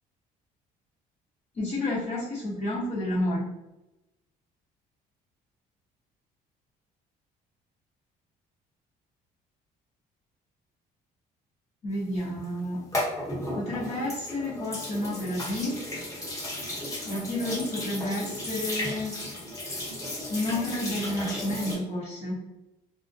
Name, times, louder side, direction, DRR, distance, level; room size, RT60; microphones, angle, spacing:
voice 1, 1.5-3.5 11.8-12.8 13.5-15.8 17.1-19.1 20.3-22.4, left 1 dB, 45° left, -9 dB, 0.8 m, -30 dB
sound 1, 12.2-21.7, left 1 dB, 20° left, 1.0 m, -34 dB
2.4 x 2.1 x 2.5 m, 0.97 s
cardioid pair, 110°, 17 cm